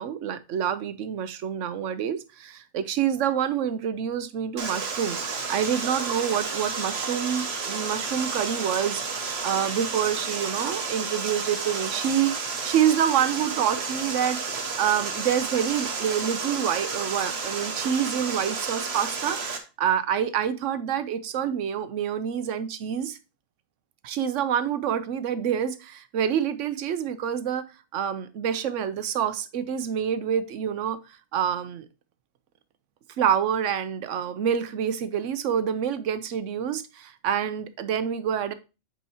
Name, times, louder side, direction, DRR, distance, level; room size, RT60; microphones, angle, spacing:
voice 1, 0.0-9.0 9.4-12.4 12.6-14.4 14.8-23.2 24.0-27.6 27.9-31.0 31.3-31.9 33.2-38.5, right 9 dB, 90° right, 1.1 m, -27 dB
Water, 4.6-19.6, right 4 dB, 60° right, 1.3 m, -31 dB
8.4 x 4.5 x 2.8 m
omnidirectional pair, 1.2 m